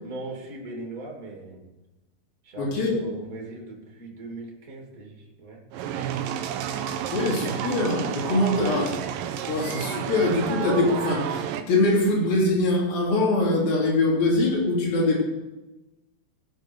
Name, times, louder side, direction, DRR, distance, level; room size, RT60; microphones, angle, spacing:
voice 1, 0.0-1.7 2.4-6.2, right 2 dB, 25° right, -1 dB, 2.7 m, -40 dB
voice 2, 2.6-3.0 6.9-8.9 9.5-15.2, left 2 dB, 60° left, -4 dB, 4.9 m, -23 dB
sound 1, 5.7-11.6, right 9 dB, 75° right, 2.1 m, -30 dB
18.0 x 6.8 x 6.3 m, 1.1 s
omnidirectional pair, 4.7 m